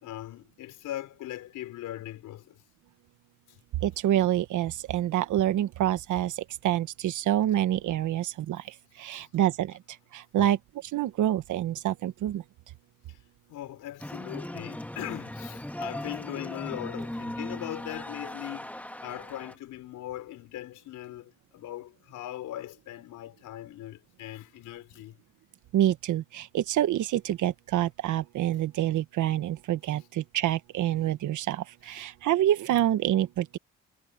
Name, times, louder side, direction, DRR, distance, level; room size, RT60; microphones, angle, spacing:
voice 1, 0.0-2.6 9.1-9.3 10.4-10.5 13.1-13.2 13.5-25.2 31.9-32.0, left 14 dB, 85° left, 4.7 m, -40 dB
voice 2, 3.8-10.6 10.9-12.4 25.7-33.6, right 12 dB, 80° right, 1.4 m, -27 dB
sound 1, 14.0-19.5, left 1 dB, 5° left, 2.3 m, -38 dB
cardioid pair, 90°, 30 cm